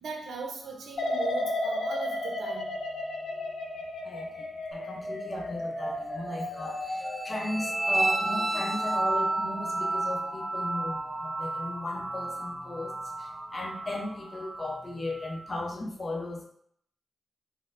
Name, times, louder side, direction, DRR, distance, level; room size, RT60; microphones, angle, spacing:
voice 1, 0.0-2.7, right 4 dB, 85° right, 0 dB, 0.7 m, -39 dB
sound 1, 1.0-7.9 8.3-8.8, left 1 dB, 75° left, 0.5 m, -34 dB
voice 2, 4.7-12.9 13.5-16.5, left 1 dB, 35° left, 1 dB, 0.7 m, -36 dB
sound 2, 4.7-14.7, right 1 dB, 45° right, 1.1 m, -38 dB
sound 3, 6.8-15.6, right 2 dB, 15° right, 0.4 m, -32 dB
4.1 x 2.1 x 2.6 m, 0.65 s
cardioid pair, 75°, 0 cm